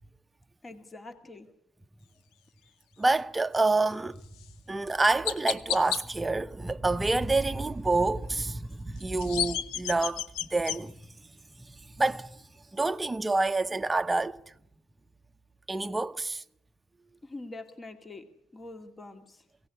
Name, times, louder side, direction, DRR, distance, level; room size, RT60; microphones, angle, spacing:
voice 1, 0.6-1.5 17.2-18.3 18.5-19.4, left 2 dB, 25° left, 2.3 m, -44 dB
voice 2, 3.0-4.2 4.7-11.1 11.6-12.4 12.7-14.4 15.7-16.4, right 3 dB, 15° right, 0.9 m, -28 dB
Chirp tweet, 4.3-4.5 5.2-6.0 9.0-10.8, left 10 dB, 85° left, 1.0 m, -31 dB
22.5 x 17.5 x 9.9 m
cardioid pair, 100°, 0 cm